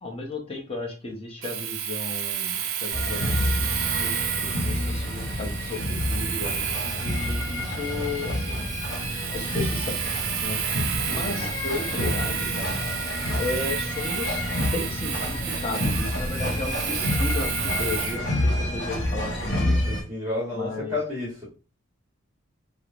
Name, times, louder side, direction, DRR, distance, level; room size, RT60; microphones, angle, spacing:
voice 1, 0.0-3.7 4.0-8.7 9.3-10.0 10.4-10.6 11.0-13.1 13.4-14.4 14.7-19.8 20.5-20.9, left 2 dB, 30° left, 0.6 m, -34 dB
Domestic sounds home sounds, 1.4-18.2, right 9 dB, 75° right, 0.4 m, -32 dB
sound 1, 2.9-20.0, left 1 dB, 60° left, 0.7 m, -28 dB
voice 2, 11.0-11.5 19.5-21.4, left 2 dB, 15° right, 1.1 m, -32 dB
2.9 x 2.1 x 2.4 m
head